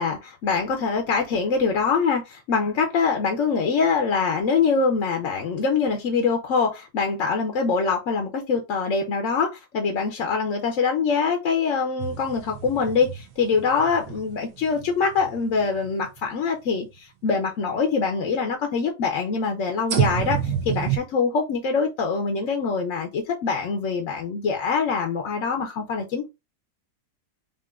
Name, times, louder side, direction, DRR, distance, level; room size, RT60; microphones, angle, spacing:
voice 1, 0.0-26.3, left 5 dB, 60° left, 0.8 m, -24 dB
sound 1, 12.0-16.3 16.9-17.0 19.9-21.0, right 10 dB, 65° right, 1.2 m, -29 dB
5.2 x 2.5 x 2.4 m
omnidirectional pair, 1.8 m